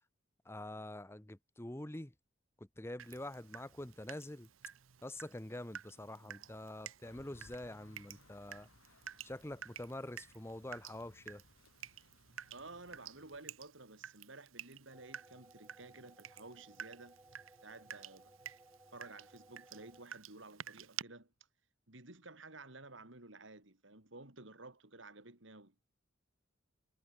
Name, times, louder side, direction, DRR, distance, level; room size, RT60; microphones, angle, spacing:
voice 1, 0.5-2.1 2.8-4.5 5.0-8.7 9.2-11.4, left 1 dB, 10° left, 0.8 m, -46 dB
Water tap faucet / Drip, 3.0-21.0, right 9 dB, 85° right, 0.9 m, -52 dB
sound 1, 7.0-13.4, left 3 dB, 85° left, 1.4 m, -65 dB
voice 2, 12.5-17.2 17.6-18.6 18.9-21.3 21.9-25.8, right 2 dB, 70° right, 3.5 m, -53 dB
sound 2, 14.9-20.0, right 1 dB, 15° right, 7.3 m, -62 dB
head